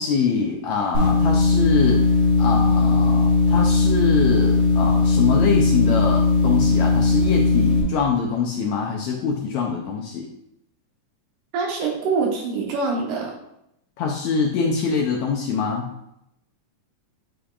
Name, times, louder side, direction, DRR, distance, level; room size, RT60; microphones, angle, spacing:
voice 1, 0.0-2.0 2.4-10.3 14.0-15.9, left 5 dB, 80° left, 0 dB, 1.7 m, -24 dB
sound 1, 0.9-7.8, left 3 dB, 45° right, 2.3 m, -18 dB
voice 2, 11.5-13.3, right 4 dB, 70° right, -1 dB, 2.4 m, -24 dB
8.7 x 5.0 x 2.3 m, 0.81 s
omnidirectional pair, 3.8 m